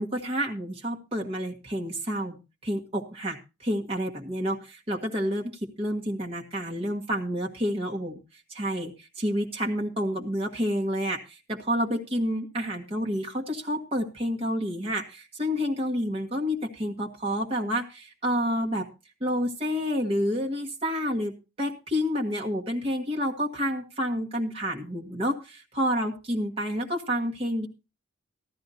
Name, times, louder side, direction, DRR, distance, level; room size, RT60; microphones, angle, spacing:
voice 1, 0.0-2.4 2.6-8.2 8.5-18.9 19.2-27.7, equal, 30° right, 0 dB, 1.5 m, -29 dB
15.0 x 12.5 x 2.7 m, 0.28 s
head